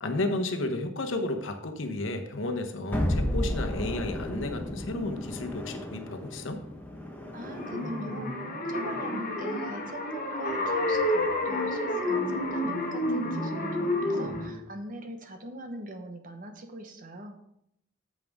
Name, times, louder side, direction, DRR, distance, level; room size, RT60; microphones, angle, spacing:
voice 1, 0.0-6.6, left 2 dB, 70° left, 5 dB, 1.0 m, -32 dB
sound 1, 2.9-8.0, left 1 dB, 10° left, 1.2 m, -33 dB
voice 2, 7.3-17.5, right 1 dB, 45° right, 5 dB, 1.1 m, -42 dB
sound 2, 7.4-14.5, left 1 dB, 45° left, 1.5 m, -29 dB
8.9 x 7.6 x 3.6 m, 0.76 s
head